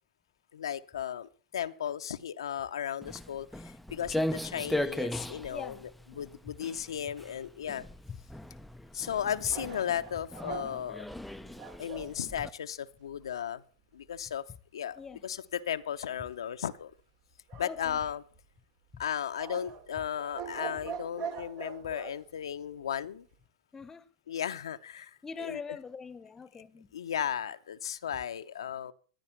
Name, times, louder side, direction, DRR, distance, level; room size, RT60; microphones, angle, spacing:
voice 1, 0.5-5.8 6.2-7.8 8.9-11.0 11.8-13.6 13.9-14.4 14.7-16.9 17.6-18.2 19.0-23.2 24.3-25.6 26.9-28.9, left 9 dB, 85° left, 0.7 m, -35 dB
Walk footsteps, 3.0-12.5, left 1 dB, ahead, 0.6 m, -38 dB
voice 2, 5.5-5.8 6.5-6.6 8.1-8.2 15.0-15.3 17.5-18.0 18.9-19.0 23.7-24.0 25.0-27.0, left 5 dB, 20° left, 1.1 m, -43 dB
sound 1, 9.5-12.1 17.5-18.4 19.4-22.1, right 6 dB, 55° right, 3.2 m, -42 dB
15.5 x 10.5 x 5.9 m
hypercardioid pair, 105°, 3 cm